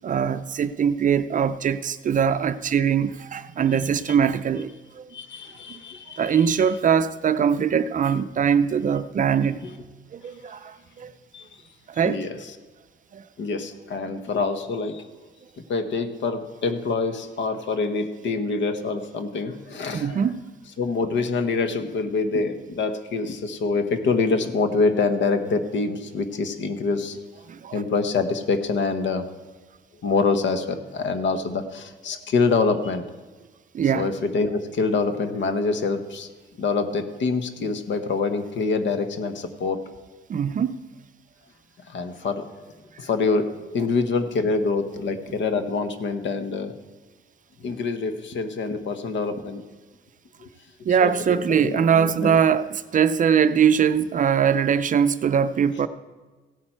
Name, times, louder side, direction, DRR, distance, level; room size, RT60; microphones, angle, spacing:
voice 1, 0.0-5.1 5.7-5.8 6.2-9.6 10.1-11.2 11.9-12.2 13.1-13.2 19.9-20.5 27.5-27.8 33.7-34.1 40.3-40.8 50.8-55.9, right 7 dB, 40° right, 0.4 m, -22 dB
voice 2, 5.1-6.4 9.6-9.7 11.3-11.5 12.0-12.3 13.4-15.1 15.7-20.2 20.8-27.2 27.7-29.2 30.0-33.0 33.9-36.3 36.6-39.8 41.9-42.5 43.0-46.7 47.6-49.6 50.4-50.5 51.0-51.1 51.5-52.4, left 4 dB, 70° left, 1.1 m, -25 dB
16.0 x 8.6 x 4.5 m
cardioid pair, 140°, 20 cm